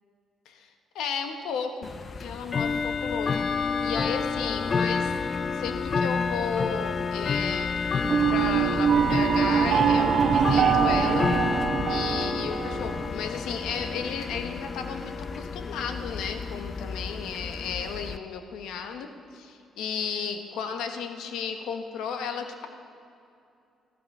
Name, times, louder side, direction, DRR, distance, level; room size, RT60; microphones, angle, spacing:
voice 1, 0.9-1.9 2.2-5.2 5.5-7.8 8.1-11.3 11.9-22.7, left 6 dB, 85° left, 6 dB, 1.2 m, -34 dB
Bell / Tick-tock, 1.8-18.2, left 5 dB, 40° left, 0.5 m, -29 dB
sound 1, 8.0-13.1, right 8 dB, 60° right, 0.3 m, -24 dB
14.5 x 13.0 x 5.5 m, 2.6 s
cardioid pair, 90°, 0 cm